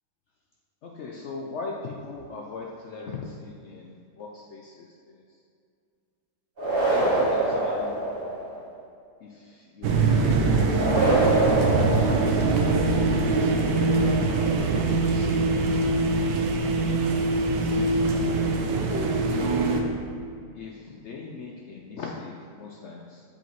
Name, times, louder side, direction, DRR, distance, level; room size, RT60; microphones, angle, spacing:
voice 1, 0.8-5.2 6.9-8.0 8.3-8.7 9.2-11.1 11.8-15.9 16.7-18.2 19.3-20.0 20.5-23.2, left 4 dB, 80° left, -1 dB, 0.6 m, -39 dB
sound 1, 6.6-8.6 10.7-12.8, right 2 dB, 35° right, 1.6 m, -25 dB
sound 2, 9.8-19.8, right 3 dB, 90° right, 1.3 m, -23 dB
7.6 x 5.1 x 3.0 m, 2.3 s
omnidirectional pair, 1.8 m